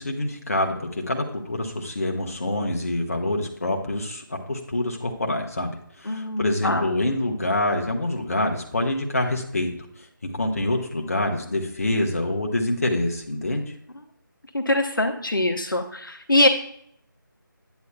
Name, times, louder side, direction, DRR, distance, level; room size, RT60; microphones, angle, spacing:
voice 1, 0.0-9.7 10.0-13.6, left 1 dB, 40° left, 2 dB, 1.0 m, -26 dB
voice 2, 6.1-6.9 14.5-16.5, left 1 dB, 70° left, 4 dB, 0.8 m, -23 dB
9.3 x 7.7 x 2.2 m, 0.69 s
figure-of-eight pair, 160°, 12 cm